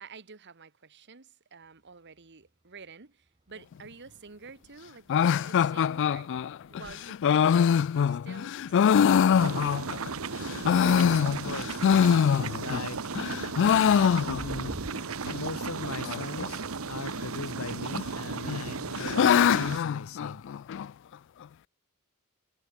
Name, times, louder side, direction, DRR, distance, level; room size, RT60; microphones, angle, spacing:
voice 1, 0.0-6.3 6.7-9.4, right 5 dB, 55° right, 1.4 m, -49 dB
sound 1, 1.7-2.9 3.2-14.9, right 1 dB, 25° right, 1.4 m, -53 dB
sound 2, 5.1-10.1 10.5-12.9 13.1-14.7 15.0-15.1 15.3-15.4 16.0-16.4 17.5-18.1 18.4-20.9, left 7 dB, 60° left, 0.3 m, -24 dB
sound 3, 9.4-19.8, right 4 dB, 70° right, 1.1 m, -35 dB
voice 2, 10.9-12.2 12.6-13.0 14.3-14.9 15.2-20.5, left 3 dB, 80° left, 1.7 m, -39 dB
head